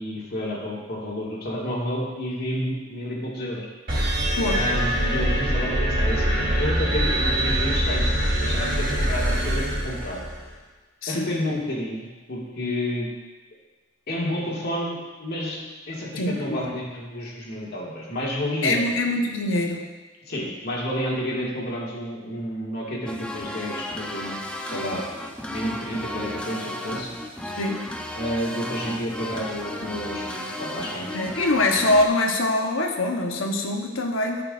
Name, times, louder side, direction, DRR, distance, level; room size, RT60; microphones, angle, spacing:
voice 1, 0.0-3.7 4.5-8.1 8.4-10.2 11.1-13.1 14.1-15.6 15.9-18.8 20.3-24.3 24.6-25.0 25.5-27.1 28.2-31.1, equal, 55° left, -5 dB, 2.0 m, -30 dB
sound 1, 3.9-10.5, right 1 dB, 45° right, 2.6 m, -23 dB
voice 2, 16.2-16.7 18.6-19.8 27.4-27.9 31.1-34.4, left 2 dB, 85° left, 2 dB, 1.1 m, -24 dB
sound 2, 23.1-32.1, left 1 dB, 5° left, 0.5 m, -34 dB
14.5 x 5.8 x 2.5 m, 1.3 s
head